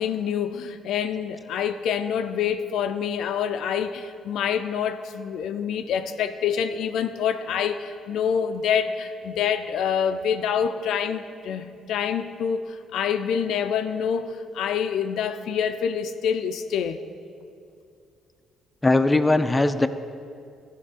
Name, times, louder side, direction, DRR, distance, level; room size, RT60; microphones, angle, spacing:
voice 1, 0.0-17.0, left 7 dB, 70° left, 8 dB, 0.4 m, -26 dB
voice 2, 18.8-19.9, left 2 dB, 15° left, 9 dB, 0.5 m, -19 dB
14.5 x 5.2 x 5.0 m, 2.4 s
hypercardioid pair, 55°, 0 cm